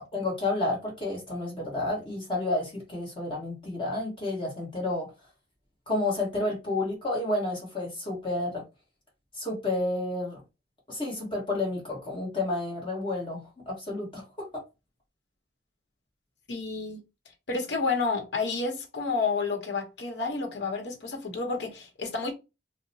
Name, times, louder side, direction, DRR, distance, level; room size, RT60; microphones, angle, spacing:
voice 1, 0.0-5.1 5.9-8.6 9.4-10.4 10.9-14.6, left 2 dB, 30° left, 1.2 m, -30 dB
voice 2, 16.5-17.0 17.5-22.3, left 4 dB, 80° left, 1.0 m, -30 dB
2.9 x 2.1 x 3.9 m
head